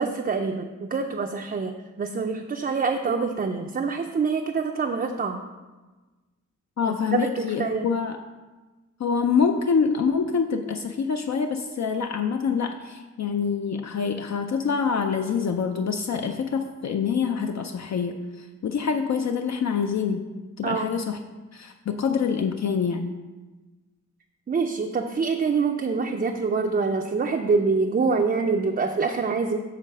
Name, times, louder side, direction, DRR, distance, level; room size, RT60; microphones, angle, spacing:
voice 1, 0.0-5.4 6.9-7.9 20.6-20.9 24.5-29.6, right 4 dB, 30° right, 3 dB, 0.4 m, -25 dB
voice 2, 6.8-8.2 9.0-20.2 20.6-21.2 21.5-23.1, left 6 dB, 65° left, 5 dB, 0.5 m, -26 dB
7.4 x 4.1 x 6.5 m, 1.2 s
wide cardioid pair, 155°, 30 cm